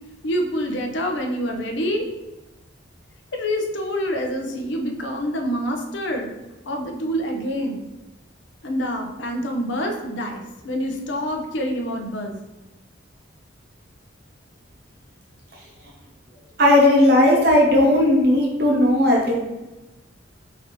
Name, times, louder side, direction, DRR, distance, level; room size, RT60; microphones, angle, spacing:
voice 1, 0.2-2.1 3.3-6.3 6.7-7.8 8.6-12.4, equal, 65° left, 3 dB, 0.5 m, -26 dB
voice 2, 16.6-19.3, left 1 dB, 55° right, -1 dB, 0.9 m, -16 dB
4.0 x 2.7 x 3.0 m, 1.0 s
head